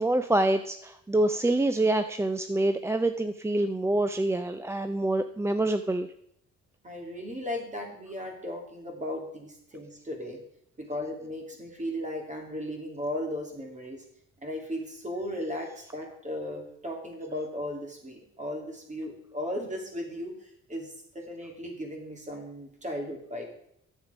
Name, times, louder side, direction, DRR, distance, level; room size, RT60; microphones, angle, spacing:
voice 1, 0.0-6.1, right 2 dB, 10° right, 9 dB, 0.4 m, -26 dB
voice 2, 6.8-10.4 10.8-14.0 14.4-23.4, left 1 dB, 25° right, 2 dB, 2.8 m, -36 dB
9.4 x 7.4 x 5.1 m, 0.73 s
cardioid pair, 90°, 30 cm